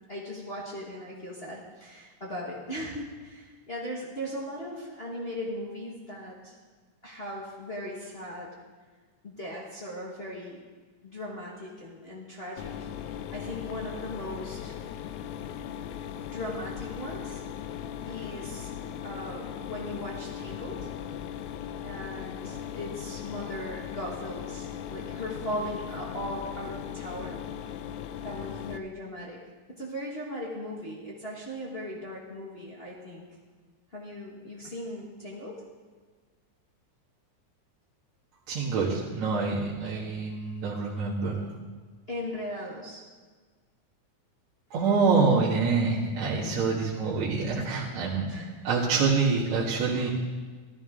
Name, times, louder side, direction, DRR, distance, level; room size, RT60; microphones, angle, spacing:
voice 1, 0.0-6.5 7.0-8.5 9.2-10.6 11.0-14.7 16.2-17.4 18.1-18.7 19.0-20.9 21.8-27.4 28.2-29.4 29.7-33.2 33.9-35.6 42.1-43.0 48.3-48.7, left 1 dB, 25° left, -5 dB, 1.3 m, -38 dB
Mechanisms, 12.6-28.8, left 9 dB, 80° left, 2.1 m, -38 dB
voice 2, 38.5-41.5 44.7-48.3 48.6-50.1, right 4 dB, 65° right, -7 dB, 2.8 m, -26 dB
14.5 x 13.0 x 3.8 m, 1.5 s
omnidirectional pair, 3.6 m